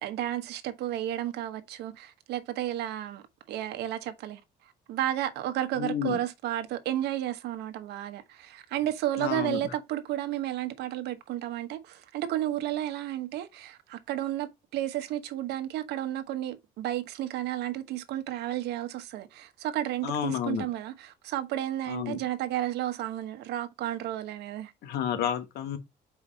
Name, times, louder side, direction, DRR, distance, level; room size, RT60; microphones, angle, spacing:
voice 1, 0.0-4.4 4.9-24.7 25.1-25.3, right 13 dB, 80° right, 1.1 m, -32 dB
voice 2, 5.8-6.2 9.2-9.6 20.0-20.6 21.9-22.2 24.8-25.8, left 9 dB, 75° left, 1.2 m, -30 dB
5.2 x 4.8 x 4.0 m
cardioid pair, 110°, 17 cm